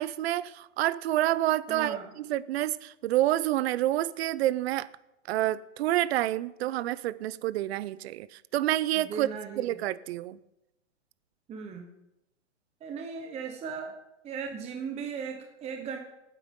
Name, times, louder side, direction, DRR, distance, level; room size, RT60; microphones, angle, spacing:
voice 1, 0.0-4.9 5.3-9.3 9.6-10.4, right 14 dB, 55° right, 0.6 m, -28 dB
voice 2, 1.7-2.1 6.6-6.7 9.0-9.7 11.5-11.9 12.8-14.0 14.2-16.0, right 6 dB, 15° right, 1.1 m, -37 dB
19.0 x 9.3 x 3.7 m
hypercardioid pair, 140°, 37 cm